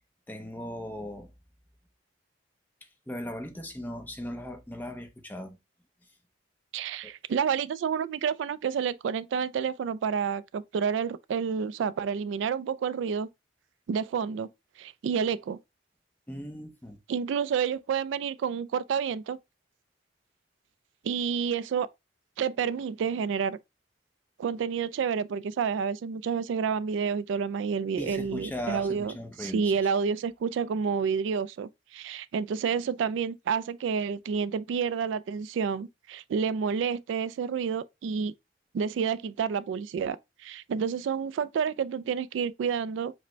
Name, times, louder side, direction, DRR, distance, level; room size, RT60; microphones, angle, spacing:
voice 1, 0.3-1.3 2.8-5.6 7.0-7.1 16.3-17.0 28.0-29.8, equal, 10° left, 0.7 m, -38 dB
voice 2, 6.7-13.3 13.9-14.5 14.8-15.6 17.1-19.4 21.0-21.9 22.4-23.6 24.4-29.1 29.4-38.3 38.7-40.2 40.4-43.1, right 6 dB, 80° right, 0.3 m, -29 dB
4.9 x 2.1 x 4.4 m
head